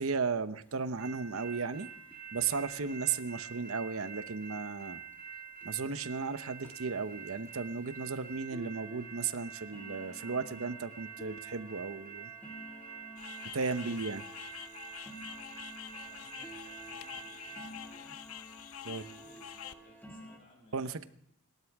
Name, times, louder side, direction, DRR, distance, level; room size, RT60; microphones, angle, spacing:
voice 1, 0.0-1.9 2.3-5.0 5.6-12.3 13.5-14.3 18.8-19.0 20.7-21.0, right 5 dB, 70° right, 12 dB, 0.9 m, -35 dB
sound 1, 0.7-0.8 1.0-1.1 1.3-1.5 1.8-2.2 2.9-3.0 3.5-3.6 4.0-4.1 4.5-4.6 5.1-5.2 5.6-5.8 6.2-6.3 6.6-20.4, right 1 dB, 10° left, 2.2 m, -52 dB
Freight Train Crossing, 1.0-17.7, right 7 dB, 45° right, 4.9 m, -47 dB
sound 2, 13.2-19.7, left 10 dB, 75° left, 0.8 m, -47 dB
voice 2, 15.9-18.2 18.8-20.9, left 1 dB, 25° left, -3 dB, 6.6 m, -61 dB
28.5 x 12.5 x 3.6 m, 0.71 s
head